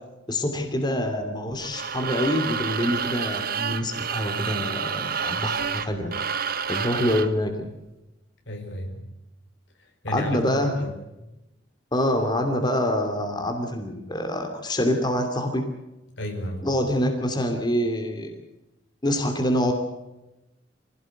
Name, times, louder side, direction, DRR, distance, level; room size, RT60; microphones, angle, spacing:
voice 1, 0.3-6.1 6.7-7.7 10.1-10.7 11.9-15.6 16.6-18.4 19.0-19.7, left 1 dB, 25° left, 4 dB, 2.7 m, -26 dB
sound 1, 1.6-7.4, right 6 dB, 55° right, 1.2 m, -29 dB
voice 2, 8.5-9.1 9.8-10.9 16.2-16.7, equal, 75° left, 4 dB, 4.7 m, -33 dB
25.0 x 16.5 x 7.9 m, 0.97 s
head